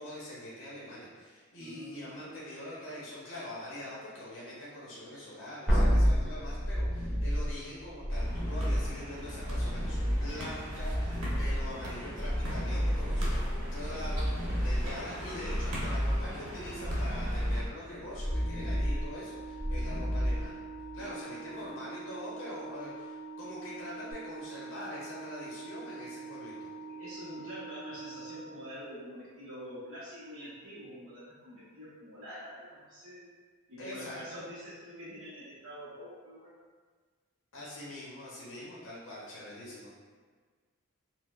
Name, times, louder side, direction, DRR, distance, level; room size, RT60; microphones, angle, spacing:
voice 1, 0.0-20.6 20.9-26.7 33.8-34.4 37.5-39.9, left 1 dB, 60° left, -7 dB, 0.6 m, -44 dB
voice 2, 1.6-2.1 21.0-21.8 26.9-33.3 33.7-36.5, equal, 65° right, -11 dB, 0.8 m, -46 dB
sound 1, 5.7-21.0 24.1-24.2, equal, ahead, 0.8 m, -31 dB
sound 2, 8.1-17.6, equal, 90° right, 0.9 m, -40 dB
Organ, 18.2-29.1, right 4 dB, 20° left, 0.3 m, -45 dB
4.4 x 2.0 x 2.3 m, 1.5 s
head